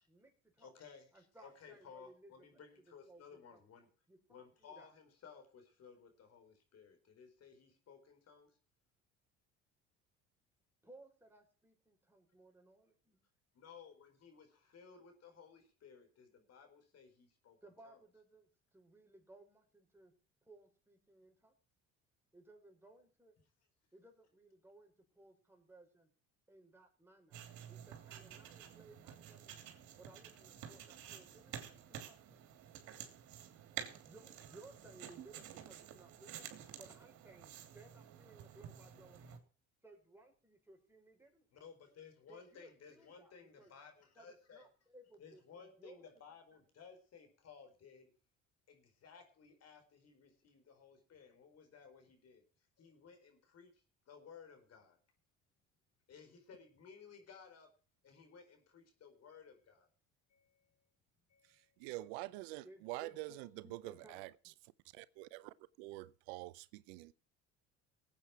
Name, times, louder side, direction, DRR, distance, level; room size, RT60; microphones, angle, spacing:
voice 1, 0.1-0.7 1.1-2.6 3.1-3.7 4.1-4.2 4.6-4.9 10.8-13.2 17.6-19.6 19.9-20.1 20.4-21.5 22.3-23.4 23.9-26.1 26.5-27.4 27.7-29.6 30.0-32.2 34.0-39.4 39.8-41.5 42.3-43.7 44.2-46.0 46.5-46.6 62.6-64.3, right 2 dB, 5° right, 5.5 m, -61 dB
voice 2, 0.6-3.9 4.3-8.6 13.5-17.6 17.8-18.0 41.5-44.6 45.2-48.1 48.7-52.4 52.8-55.0 56.1-57.7 58.0-59.9 60.3-60.9 61.3-61.9, left 6 dB, 50° left, 4.5 m, -58 dB
sound 1, 27.3-39.4, right 9 dB, 65° right, 3.2 m, -51 dB
voice 3, 61.8-64.3 64.9-67.1, right 19 dB, 85° right, 0.7 m, -46 dB
19.0 x 8.6 x 4.6 m
supercardioid pair, 80°, 32 cm